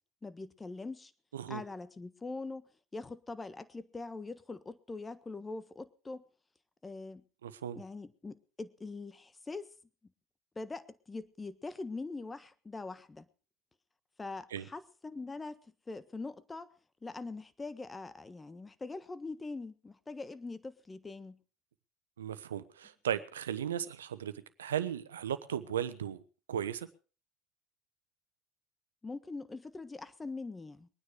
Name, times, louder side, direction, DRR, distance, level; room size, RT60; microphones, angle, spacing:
voice 1, 0.2-1.1 1.5-6.2 6.8-7.2 7.7-9.7 10.5-13.2 14.2-15.6 15.9-16.7 17.0-21.4 29.0-30.9, left 3 dB, 20° left, 1.4 m, -43 dB
voice 2, 7.4-7.8 14.5-14.7 22.2-24.3 24.6-26.2 26.5-26.9, right 9 dB, 90° right, 1.0 m, -36 dB
22.5 x 9.7 x 4.9 m
hypercardioid pair, 75°, 0 cm